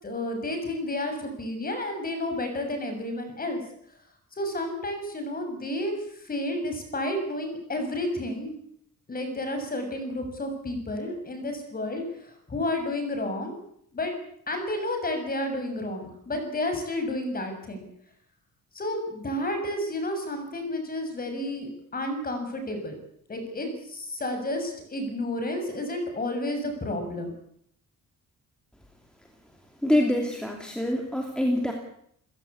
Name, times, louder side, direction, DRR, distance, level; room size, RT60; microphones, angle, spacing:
voice 1, 0.0-3.6 4.4-5.9 6.2-8.5 9.1-13.5 13.9-14.1 14.5-17.8 18.7-23.0 23.3-27.3, left 1 dB, 25° left, 6 dB, 6.8 m, -31 dB
voice 2, 29.8-31.7, left 1 dB, ahead, 2 dB, 2.9 m, -25 dB
29.5 x 16.5 x 8.6 m, 0.71 s
wide cardioid pair, 170°, 33 cm